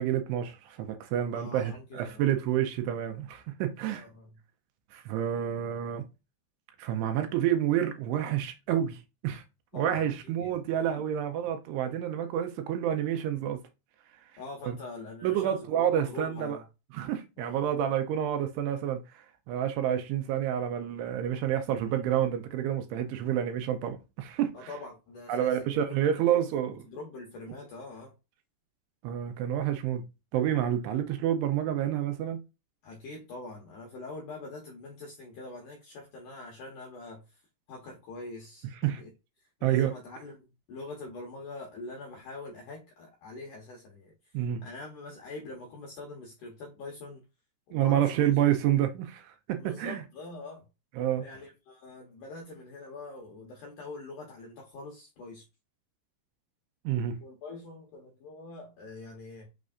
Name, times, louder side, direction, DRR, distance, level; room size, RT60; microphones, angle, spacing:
voice 1, 0.0-4.1 4.9-6.0 6.8-9.4 9.7-13.6 14.6-14.8 15.2-16.6 16.9-24.7 25.3-26.7 29.0-30.0 30.3-32.4 38.8-39.0 39.6-39.9 44.3-44.6 47.7-50.0 51.0-51.2 56.8-57.2, right 10 dB, 85° right, 2.6 m, -29 dB
voice 2, 1.3-2.4 3.8-4.4 8.7-8.8 9.7-11.1 14.4-16.6 17.4-17.7 21.8-22.0 24.5-26.4 26.9-28.1 30.9-31.0 32.8-37.4 37.7-39.1 39.4-47.2 47.7-48.3 49.6-50.7 51.2-55.4 57.2-59.5, left 3 dB, 80° left, 1.9 m, -44 dB
6.3 x 3.3 x 2.4 m
omnidirectional pair, 5.0 m